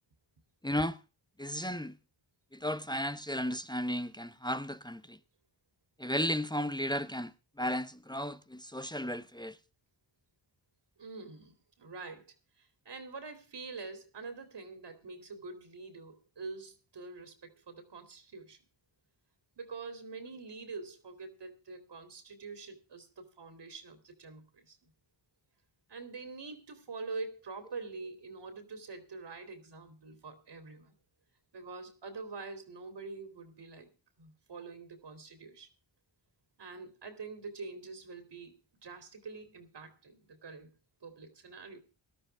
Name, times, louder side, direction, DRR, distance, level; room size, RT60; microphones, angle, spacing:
voice 1, 0.6-1.0 1.4-1.9 2.5-5.2 6.0-7.3 7.6-9.6, equal, 10° left, 0.8 m, -34 dB
voice 2, 11.0-18.6 19.6-24.8 25.9-30.9 31.5-33.9 34.2-35.7 36.6-38.5 38.8-40.7 41.0-41.8, right 4 dB, 60° right, 2.9 m, -45 dB
18.5 x 12.0 x 3.4 m
cardioid pair, 60°, 47 cm